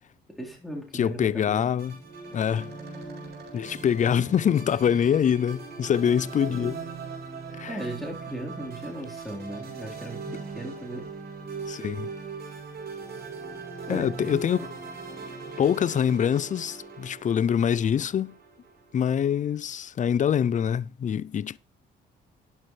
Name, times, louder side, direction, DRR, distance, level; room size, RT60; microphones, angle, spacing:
voice 1, 0.3-1.6 6.5-6.8 7.7-11.1 13.9-14.7, right 1 dB, ahead, 3.9 m, -37 dB
voice 2, 0.9-1.9 2.3-2.8 3.5-6.8 7.6-7.7 11.7-12.1 13.9-14.7 15.6-18.3 18.9-21.6, left 8 dB, 40° left, 0.5 m, -24 dB
sound 1, 1.8-19.2, right 4 dB, 50° right, 7.5 m, -40 dB
12.0 x 11.0 x 3.2 m
cardioid pair, 90°, 20 cm